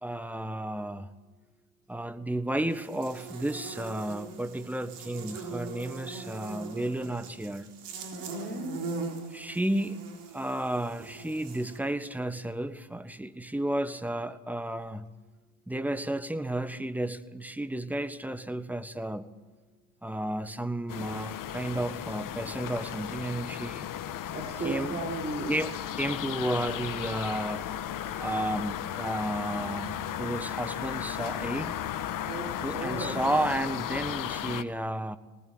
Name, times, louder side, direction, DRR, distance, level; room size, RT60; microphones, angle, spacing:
voice 1, 0.0-1.1 1.9-7.7 9.3-10.0 10.3-15.1 15.7-19.3 20.0-23.9 24.6-25.0 25.5-27.7 28.2-31.8 32.6-35.2, right 1 dB, 5° right, 12 dB, 1.4 m, -32 dB
Buzz, 2.7-11.8, right 4 dB, 65° right, 4.0 m, -41 dB
voice 2, 8.1-8.8 24.3-25.5 32.2-33.5, right 3 dB, 25° right, 2 dB, 4.5 m, -36 dB
sound 1, 20.9-34.6, left 10 dB, 45° left, 1.4 m, -35 dB
20.0 x 19.5 x 7.8 m, 1.3 s
hypercardioid pair, 70°, 44 cm